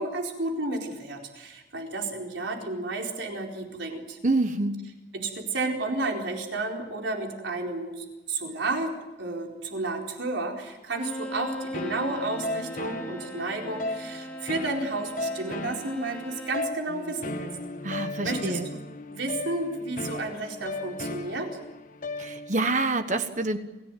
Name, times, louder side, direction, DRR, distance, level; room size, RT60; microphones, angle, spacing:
voice 1, 0.0-4.2 5.1-8.9 9.2-17.5 18.2-18.8 19.1-21.5, right 2 dB, 85° right, 1 dB, 4.4 m, -32 dB
voice 2, 4.2-4.7 17.8-18.6 22.2-23.6, right 2 dB, 40° right, 8 dB, 1.2 m, -26 dB
Bowed string instrument, 10.9-16.8, equal, 5° left, 2.0 m, -40 dB
sound 1, 11.7-22.7, left 2 dB, 45° left, 1.3 m, -36 dB
28.0 x 16.5 x 9.2 m, 1.1 s
head